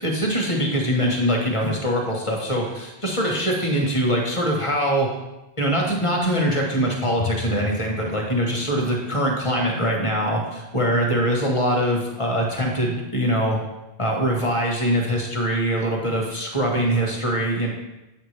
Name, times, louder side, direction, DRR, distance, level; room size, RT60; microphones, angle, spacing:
voice 1, 0.0-5.1 5.6-13.6 14.0-17.7, equal, 30° left, 0 dB, 1.3 m, -23 dB
Drum, 7.2-9.6, left 6 dB, 70° left, 0.8 m, -35 dB
7.9 x 5.8 x 3.3 m, 0.98 s
omnidirectional pair, 1.0 m